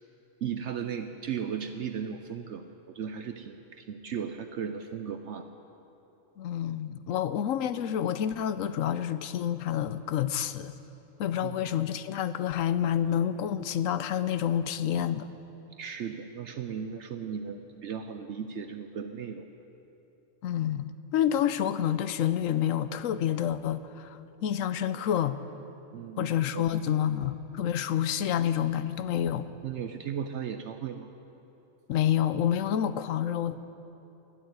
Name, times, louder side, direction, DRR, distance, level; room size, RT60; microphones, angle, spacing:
voice 1, 0.4-5.5 11.4-11.6 15.7-19.5 25.9-26.9 29.6-31.1, right 7 dB, 65° right, 7 dB, 0.9 m, -36 dB
voice 2, 6.4-10.7 11.2-15.3 20.4-25.4 26.2-29.5 31.9-33.6, left 10 dB, 80° left, 12 dB, 1.0 m, -28 dB
12.5 x 12.5 x 9.4 m, 2.9 s
omnidirectional pair, 1.4 m